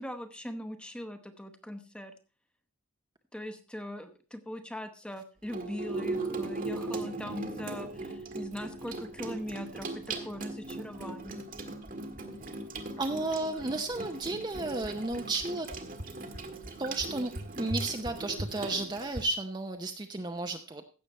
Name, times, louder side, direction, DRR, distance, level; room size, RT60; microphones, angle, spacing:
voice 1, 0.0-2.1 3.3-11.4, left 1 dB, 5° left, 9 dB, 0.9 m, -41 dB
Water tap faucet / Sink (filling or washing), 5.4-19.2, right 2 dB, 40° right, 1.4 m, -38 dB
voice 2, 13.0-15.7 16.8-20.8, right 2 dB, 20° right, 5 dB, 0.6 m, -33 dB
16.0 x 6.7 x 4.3 m, 0.37 s
head